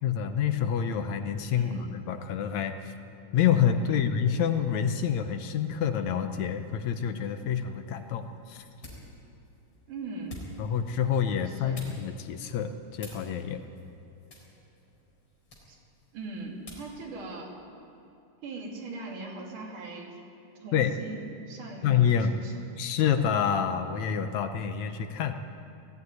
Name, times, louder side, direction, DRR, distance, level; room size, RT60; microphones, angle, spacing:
voice 1, 0.0-2.9 3.3-8.6 10.6-13.6 20.7-20.9 21.8-22.4 22.8-25.3, left 8 dB, 70° left, 8 dB, 2.0 m, -27 dB
voice 2, 1.6-2.0 3.8-4.1 9.9-10.4 11.5-11.8 15.7-15.8 16.1-17.6 18.4-20.2 20.6-22.6, right 3 dB, 80° right, -1 dB, 4.3 m, -40 dB
sound 1, 7.8-17.0, left 1 dB, 35° left, 4.7 m, -50 dB
19.0 x 14.5 x 9.4 m, 2.9 s
omnidirectional pair, 3.6 m